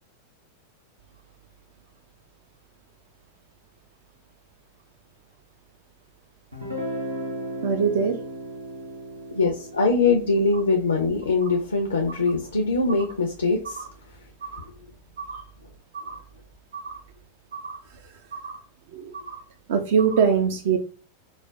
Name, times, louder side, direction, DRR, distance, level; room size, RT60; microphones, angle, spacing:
Guitar, 6.5-12.3, right 1 dB, 85° right, 0.8 m, -36 dB
voice 1, 7.6-8.1 12.1-12.2 13.6-13.9 14.4-14.7 15.2-15.4 15.9-16.2 16.7-17.0 17.5-17.8 18.3-18.6 18.9-19.4 19.7-20.8, right 6 dB, 55° right, 6 dB, 0.3 m, -24 dB
voice 2, 9.3-13.8, left 3 dB, 75° left, 2 dB, 0.5 m, -22 dB
4.0 x 2.1 x 2.3 m, 0.38 s
figure-of-eight pair, 90°, 0 cm